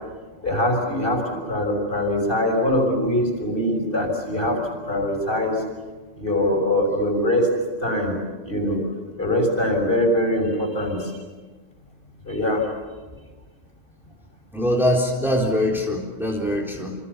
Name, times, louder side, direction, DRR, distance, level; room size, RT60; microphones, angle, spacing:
voice 1, 0.4-5.6 6.2-7.5 7.8-8.1 8.4-8.8 9.2-11.1 12.2-12.7, left 1 dB, 45° left, 3 dB, 6.7 m, -22 dB
voice 2, 14.5-17.0, left 1 dB, ahead, -1 dB, 3.9 m, -22 dB
29.0 x 26.5 x 7.1 m, 1.3 s
omnidirectional pair, 1.3 m